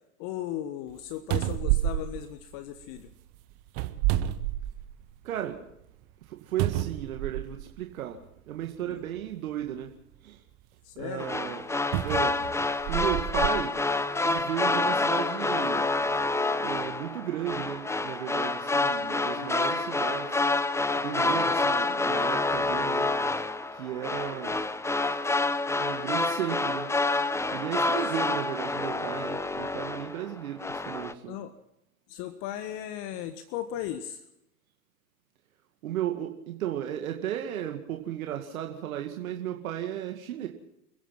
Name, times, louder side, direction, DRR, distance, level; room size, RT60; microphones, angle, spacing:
voice 1, 0.2-3.1 8.8-9.0 10.8-11.4 19.3-19.8 28.1-28.3 31.3-31.5 32.1-34.2, left 11 dB, 45° left, 11 dB, 1.7 m, -37 dB
sound 1, 0.9-1.0 1.3-3.0 3.7-5.1 5.5-5.6 6.6-7.7 8.6-8.8 11.9-13.6 14.3-14.4, right 14 dB, 50° right, 1.7 m, -29 dB
voice 2, 5.2-5.6 6.3-8.2 8.5-10.0 10.2-10.4 11.0-11.6 12.0-12.4 12.9-13.8 14.2-16.3 16.6-20.4 21.0-23.1 23.7-24.6 25.0-25.2 25.8-26.9 27.5-31.4 35.8-40.5, right 11 dB, 70° right, 3 dB, 2.3 m, -35 dB
sound 2, 11.2-30.3 30.6-31.1, left 3 dB, 5° left, 1.1 m, -28 dB
28.5 x 16.0 x 5.9 m, 0.83 s
hypercardioid pair, 100°, 43 cm